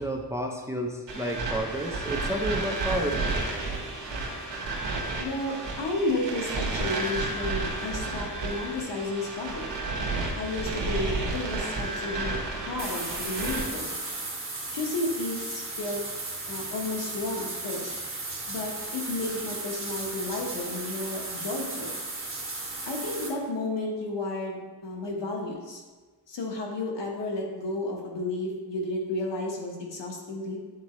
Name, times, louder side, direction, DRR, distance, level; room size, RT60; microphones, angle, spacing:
voice 1, 0.0-3.4, right 1 dB, 5° right, 1 dB, 0.6 m, -31 dB
sound 1, 1.1-13.6, right 3 dB, 85° right, 1.1 m, -32 dB
voice 2, 5.2-9.7 10.3-12.4 12.6-13.9 14.7-16.0 16.5-17.9 18.5-22.0 22.8-25.8 26.3-30.6, left 2 dB, 85° left, 0 dB, 1.3 m, -32 dB
sound 2, 12.8-23.3, right 2 dB, 30° right, 1.3 m, -35 dB
8.1 x 4.2 x 3.1 m, 1.3 s
wide cardioid pair, 105°, 42 cm